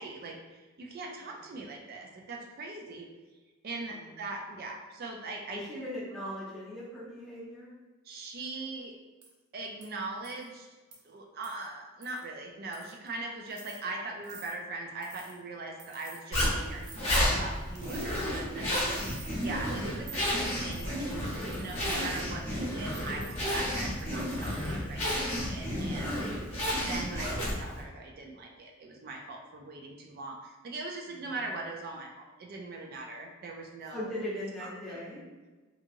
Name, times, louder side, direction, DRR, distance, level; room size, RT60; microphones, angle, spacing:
voice 1, 0.0-3.1 3.6-5.8 8.0-8.9 9.5-10.7 11.0-26.2 26.9-34.1 34.6-35.0, right 3 dB, 45° right, 1 dB, 0.3 m, -41 dB
voice 2, 5.5-7.7 18.0-18.6 24.4-24.8 31.1-31.2 33.9-35.2, left 1 dB, ahead, -9 dB, 0.8 m, -40 dB
sound 1, 9.2-9.3 9.8-9.9 10.2-10.5 10.9-11.0 11.4-11.7 12.0-12.3 12.7-13.1 13.5-13.8 14.2-14.5 15.0-15.4 15.8-16.2 16.8-17.4 17.7-18.4 18.7-19.5 20.1-22.2 22.9-24.7 25.1-25.5, right 4 dB, 85° right, 0.6 m, -51 dB
Zipper (clothing), 16.3-27.8, equal, 30° left, 0.9 m, -31 dB
2.7 x 2.7 x 2.6 m, 1.3 s
head